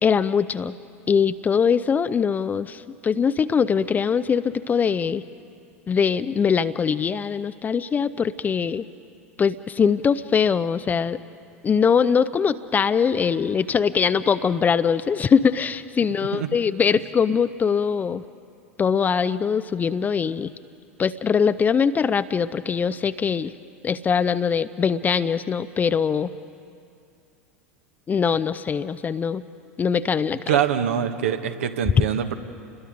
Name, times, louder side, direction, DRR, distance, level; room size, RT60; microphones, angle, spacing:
voice 1, 0.0-0.8 1.1-5.2 5.9-8.8 9.4-11.2 11.6-18.2 18.8-20.5 21.0-23.5 23.8-26.3 28.1-29.4 29.8-30.6 32.0-32.1, left 6 dB, 25° left, 12 dB, 0.6 m, -22 dB
voice 2, 30.5-32.4, right 9 dB, 65° right, 7 dB, 1.5 m, -24 dB
29.5 x 21.5 x 5.2 m, 2.5 s
figure-of-eight pair, 80°, 7 cm